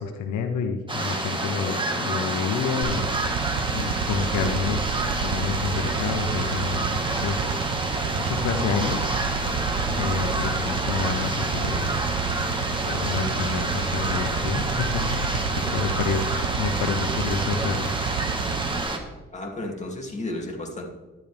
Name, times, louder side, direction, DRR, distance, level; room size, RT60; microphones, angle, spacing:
voice 1, 0.0-3.0 3.7-4.8 5.2-7.5 8.2-9.1 9.9-11.9 12.8-16.2 16.5-18.0, left 6 dB, 80° left, 6 dB, 1.1 m, -29 dB
sound 1, 0.9-19.0, right 2 dB, 15° right, 1.8 m, -28 dB
sound 2, 2.8-18.8, right 6 dB, 60° right, 0.8 m, -30 dB
voice 2, 19.3-20.9, left 1 dB, 25° left, 0 dB, 2.7 m, -33 dB
12.0 x 11.0 x 3.5 m, 1.2 s
cardioid pair, 90°, 30 cm